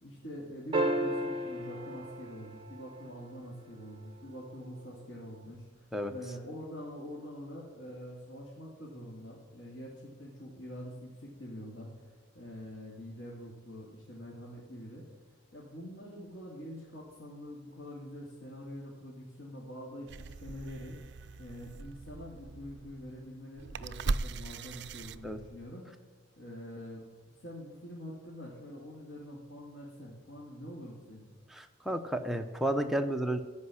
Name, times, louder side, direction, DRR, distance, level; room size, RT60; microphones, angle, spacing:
voice 1, 0.0-12.1 12.3-15.1 15.5-21.0 21.4-25.9 26.4-31.3, equal, 75° left, -6 dB, 2.8 m, -45 dB
sound 1, 0.7-3.3 5.5-5.6, right 1 dB, 25° right, 1.2 m, -33 dB
sound 2, 20.1-25.8, right 3 dB, 55° right, 0.5 m, -39 dB
voice 2, 31.5-33.4, right 1 dB, ahead, 4 dB, 0.7 m, -32 dB
15.5 x 5.4 x 9.8 m, 1.3 s
head